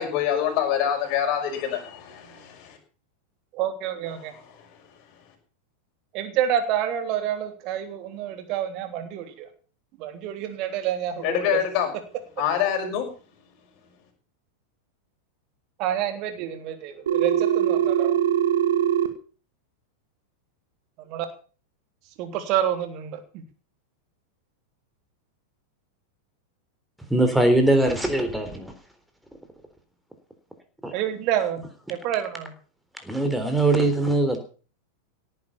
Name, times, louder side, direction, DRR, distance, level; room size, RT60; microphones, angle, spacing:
voice 1, 0.0-2.8 11.2-11.9 12.4-13.1, left 9 dB, 40° left, 3 dB, 6.0 m, -25 dB
voice 2, 3.5-4.3 6.1-9.5 10.0-11.6 15.8-18.2 21.0-21.2 22.2-23.2 30.9-32.5, right 10 dB, 40° right, 8 dB, 3.2 m, -28 dB
Telephone, 17.1-19.1, right 10 dB, 65° right, 2.2 m, -21 dB
voice 3, 27.1-28.7 30.8-30.9 33.0-34.4, right 2 dB, 5° right, 7 dB, 3.7 m, -21 dB
17.5 x 9.8 x 7.1 m, 0.40 s
figure-of-eight pair, 90°, 0 cm